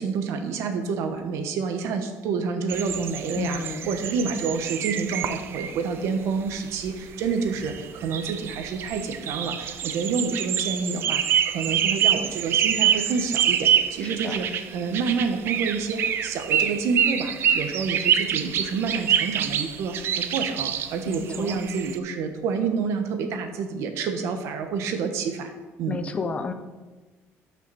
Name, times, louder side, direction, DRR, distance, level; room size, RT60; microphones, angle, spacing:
voice 1, 0.0-25.5 25.8-26.0, right 5 dB, 70° right, 6 dB, 1.3 m, -28 dB
sound 1, 2.7-5.8 6.5-6.6 6.8-6.9 7.2-22.0, right 9 dB, 50° right, 0.6 m, -26 dB
voice 2, 3.4-3.9 14.0-14.5 21.1-21.6 25.9-26.5, left 4 dB, 25° left, 9 dB, 0.6 m, -32 dB
13.0 x 6.0 x 4.3 m, 1.3 s
cardioid pair, 155°, 5 cm